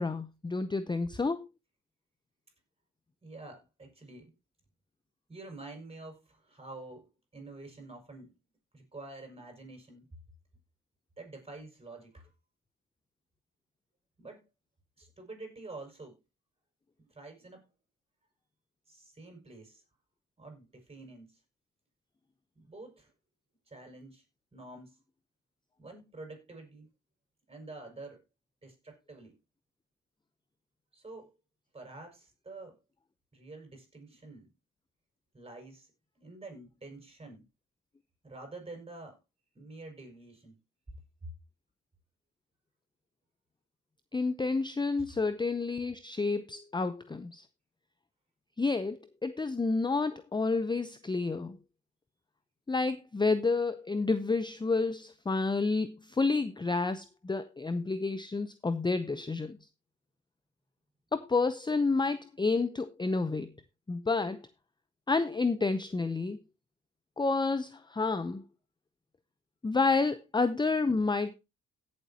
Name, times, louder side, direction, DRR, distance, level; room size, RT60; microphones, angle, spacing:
voice 1, 0.0-1.5 44.1-47.4 48.6-51.6 52.7-59.6 61.1-63.5 63.9-64.4 65.1-66.4 67.2-68.4 69.6-71.3, left 3 dB, 15° left, 0.7 m, -30 dB
voice 2, 3.2-4.3 5.3-8.3 8.7-10.1 11.2-12.3 14.2-14.4 15.0-16.2 17.0-17.6 18.9-19.8 20.4-21.4 22.5-23.1 23.7-24.2 24.5-25.0 25.8-26.9 27.5-28.2 28.6-29.4 30.9-31.3 31.7-32.8 33.3-34.5 35.3-35.9 36.2-37.5 38.2-39.2 39.5-40.6 41.2-41.3 45.0-45.2, right 2 dB, 20° right, 6.2 m, -48 dB
17.0 x 7.6 x 2.9 m
cardioid pair, 90°, 30 cm